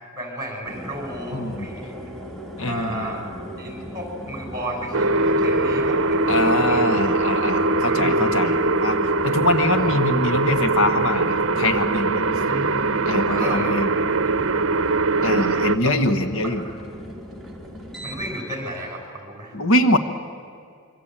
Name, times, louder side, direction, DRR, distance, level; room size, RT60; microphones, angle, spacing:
voice 1, 0.1-2.0 2.6-3.2 3.6-6.8 7.7-8.4 9.7-9.9 12.5-12.8 13.3-13.7 14.0-14.7 15.8-15.9 16.4-16.6 18.0-19.5, right 1 dB, 15° right, 2 dB, 6.1 m, -33 dB
sound 1, 0.6-18.4, equal, ahead, 2.5 m, -38 dB
voice 2, 1.3-1.7 2.6-3.2 6.3-9.0 9.2-12.2 13.0-13.9 15.2-16.6 19.5-20.0, left 1 dB, 75° left, 9 dB, 1.4 m, -23 dB
sound 2, 4.9-15.8, right 3 dB, 60° right, 0.8 m, -21 dB
25.5 x 24.0 x 8.9 m, 2.2 s
head